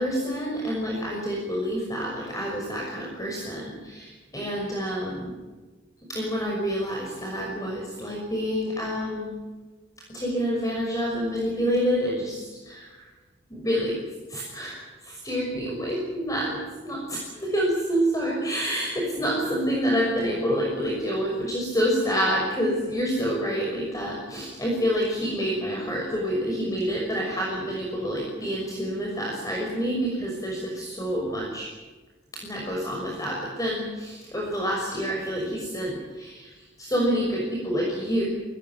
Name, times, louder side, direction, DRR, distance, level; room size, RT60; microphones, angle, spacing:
voice 1, 0.0-5.3 6.1-9.3 10.1-13.1 13.5-14.0 14.3-31.7 32.3-38.2, equal, 20° left, -2 dB, 6.1 m, -28 dB
23.0 x 19.0 x 9.5 m, 1.2 s
head